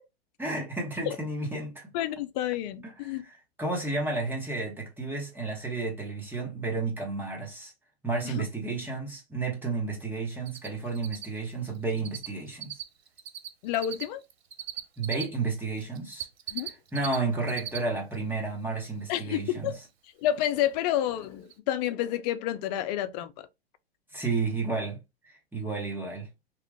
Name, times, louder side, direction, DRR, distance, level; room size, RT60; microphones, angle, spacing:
voice 1, 0.4-1.9 2.8-7.7 8.0-12.8 15.0-16.3 16.9-19.7 24.1-25.0 25.2-26.3, right 3 dB, 5° right, 1.1 m, -32 dB
voice 2, 1.9-3.2 8.2-8.4 13.6-14.2 16.5-16.7 19.1-19.8 20.2-23.5, left 12 dB, 45° left, 0.4 m, -29 dB
Cricket, 10.5-10.7 10.9-15.2 15.8-17.2 17.4-17.8 18.1-18.2 20.7-20.8 21.2-21.3 21.5-21.6, right 12 dB, 90° right, 0.6 m, -37 dB
3.0 x 2.4 x 3.4 m
hypercardioid pair, 110°, 31 cm